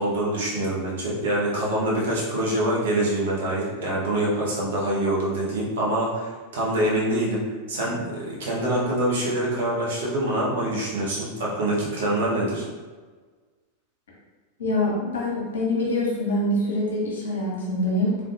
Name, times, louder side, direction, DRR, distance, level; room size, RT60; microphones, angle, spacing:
voice 1, 0.0-12.6, right 1 dB, 60° right, -6 dB, 1.1 m, -25 dB
voice 2, 14.6-18.2, left 1 dB, 60° left, -4 dB, 1.1 m, -25 dB
3.6 x 3.4 x 2.5 m, 1.4 s
figure-of-eight pair, 90°, 0 cm